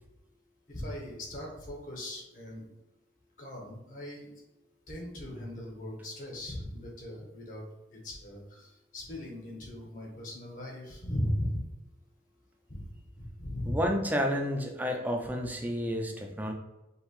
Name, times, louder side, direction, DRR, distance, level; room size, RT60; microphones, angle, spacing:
voice 1, 0.7-2.6 3.4-4.3 4.9-11.6 12.7-12.8 13.2-13.8, left 1 dB, 45° left, -1 dB, 1.3 m, -38 dB
voice 2, 13.7-16.5, equal, 10° right, 2 dB, 0.5 m, -30 dB
5.3 x 2.9 x 3.2 m, 1.0 s
head